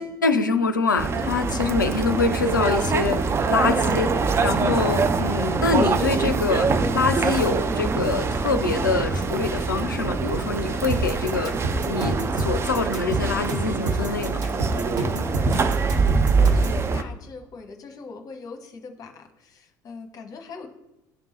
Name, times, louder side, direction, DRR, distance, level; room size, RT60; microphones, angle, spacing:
voice 1, 0.0-6.7 6.9-11.5 11.9-14.4, left 4 dB, 80° left, 8 dB, 0.4 m, -25 dB
sound 1, 1.0-17.0, right 4 dB, 25° right, 0.5 m, -24 dB
sound 2, 10.9-16.8, right 2 dB, 70° right, 1.0 m, -27 dB
voice 2, 15.9-20.7, left 4 dB, 35° left, 5 dB, 0.9 m, -41 dB
11.0 x 3.6 x 3.0 m, 0.91 s
figure-of-eight pair, 60°, 10 cm